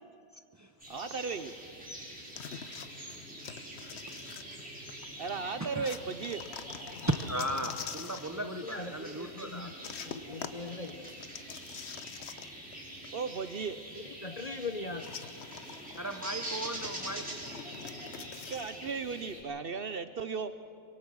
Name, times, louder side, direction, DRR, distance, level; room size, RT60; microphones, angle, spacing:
sound 1, 0.8-19.4, right 1 dB, 5° right, 5.7 m, -45 dB
voice 1, 0.9-1.6 5.2-6.4 13.1-13.8 18.5-20.5, right 5 dB, 55° right, 11 dB, 0.8 m, -36 dB
sound 2, 2.4-5.1 5.8-8.4 9.8-12.8 13.0-13.1 15.0-18.8, left 7 dB, 55° left, 1.0 m, -45 dB
voice 2, 7.3-9.7 16.0-17.2, equal, 25° right, 5 dB, 0.4 m, -37 dB
voice 3, 8.4-9.7 10.0-10.9 14.2-15.1, left 3 dB, 35° left, 8 dB, 0.8 m, -40 dB
24.5 x 22.5 x 6.3 m, 2.4 s
omnidirectional pair, 1.4 m